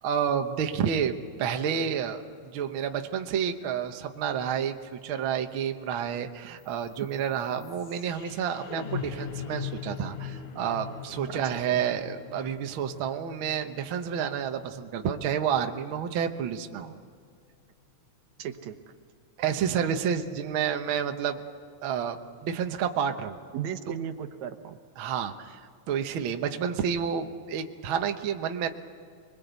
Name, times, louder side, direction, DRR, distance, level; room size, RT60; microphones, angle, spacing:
voice 1, 0.0-17.0 19.4-21.4 21.8-23.4 25.0-28.7, right 8 dB, 60° right, 6 dB, 1.5 m, -30 dB
sound 1, 6.6-16.6, left 7 dB, 80° left, 3.1 m, -41 dB
voice 2, 11.3-11.8 18.4-18.9 23.5-24.8, right 9 dB, 75° right, 8 dB, 2.3 m, -36 dB
25.5 x 22.0 x 8.1 m, 2.2 s
omnidirectional pair, 3.4 m